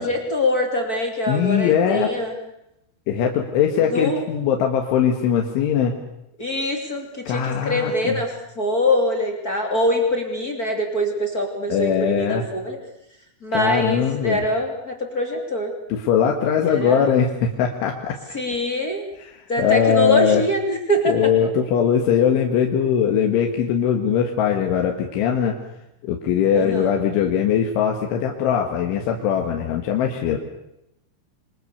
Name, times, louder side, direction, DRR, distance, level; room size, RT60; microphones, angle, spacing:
voice 1, 0.0-2.3 3.9-4.2 6.4-12.8 13.4-15.7 16.6-17.1 18.3-19.0 19.5-21.5 26.5-26.9, left 1 dB, 25° left, 3 dB, 2.3 m, -23 dB
voice 2, 1.3-2.1 3.1-5.9 7.3-8.2 11.7-12.4 13.5-14.4 15.9-18.2 19.2-20.4 21.1-25.6 26.0-30.4, left 8 dB, 75° left, 2 dB, 4.1 m, -21 dB
27.0 x 24.5 x 7.0 m, 0.83 s
omnidirectional pair, 5.8 m